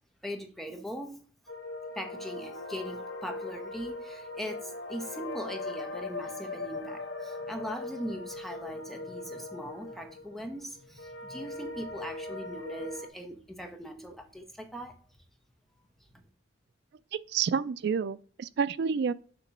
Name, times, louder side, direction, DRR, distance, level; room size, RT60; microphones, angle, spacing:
voice 1, 0.2-1.2 1.9-15.0 16.1-16.2, equal, ahead, 0.8 m, -40 dB
sound 1, 1.5-13.1, left 3 dB, 75° left, 1.0 m, -40 dB
voice 2, 17.1-19.1, right 6 dB, 60° right, 0.3 m, -29 dB
7.0 x 2.9 x 5.9 m
head